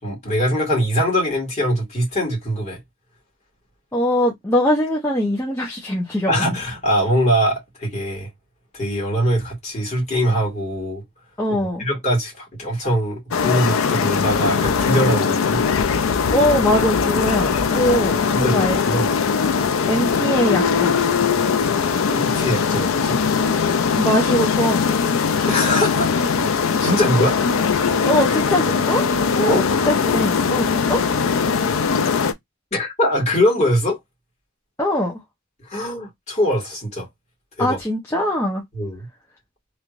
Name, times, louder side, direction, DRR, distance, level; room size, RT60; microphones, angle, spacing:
voice 1, 0.0-2.8 6.3-8.3 8.7-11.0 11.8-15.6 18.3-19.1 22.1-23.2 25.5-26.1 26.8-27.3 29.5-29.6 32.7-34.0 35.6-37.1 37.6-37.8 38.7-39.1, equal, 35° left, 2.0 m, -22 dB
voice 2, 3.9-6.6 11.4-11.9 16.3-19.0 19.9-21.0 24.0-25.0 25.3-25.6 28.0-29.0 29.4-31.0 34.8-35.2 37.6-38.6, equal, 15° left, 0.8 m, -22 dB
sound 1, 13.3-32.3, left 6 dB, 80° left, 0.5 m, -20 dB
3.3 x 3.1 x 2.5 m
head